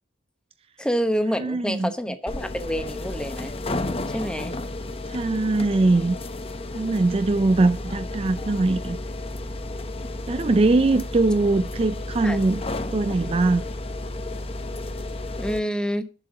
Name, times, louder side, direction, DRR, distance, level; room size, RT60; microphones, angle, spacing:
voice 1, 0.8-3.5 4.1-4.6 12.2-12.4 15.4-16.0, equal, 5° left, 1.0 m, -27 dB
voice 2, 1.4-1.9 5.1-6.2 6.7-9.0 10.3-12.6 12.9-13.6, right 2 dB, 30° right, 0.4 m, -21 dB
sound 1, 2.3-15.6, left 2 dB, 35° left, 0.9 m, -32 dB
7.4 x 6.8 x 7.5 m
head